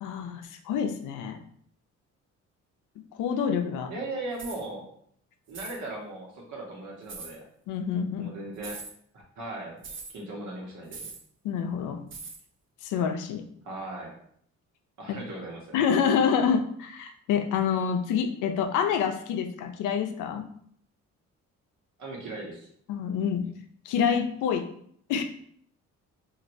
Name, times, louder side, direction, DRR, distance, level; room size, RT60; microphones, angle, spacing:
voice 1, 0.0-1.4 3.1-3.9 7.7-8.3 11.4-12.1 12.8-13.4 15.7-20.4 22.9-23.5 23.9-24.7 25.1-25.2, left 7 dB, 90° left, 6 dB, 0.5 m, -27 dB
voice 2, 3.9-4.9 5.5-7.4 8.2-8.8 9.4-9.8 10.1-11.1 13.6-14.1 15.0-15.8 22.0-22.7, right 2 dB, 70° right, -1 dB, 1.1 m, -38 dB
sound 1, 4.3-4.6 5.5-5.8 7.1-7.3 8.6-8.9 9.8-10.1 10.9-11.2 12.1-12.4, right 4 dB, 40° right, 0.5 m, -41 dB
3.0 x 2.5 x 2.6 m, 0.64 s
cardioid pair, 90°, 30 cm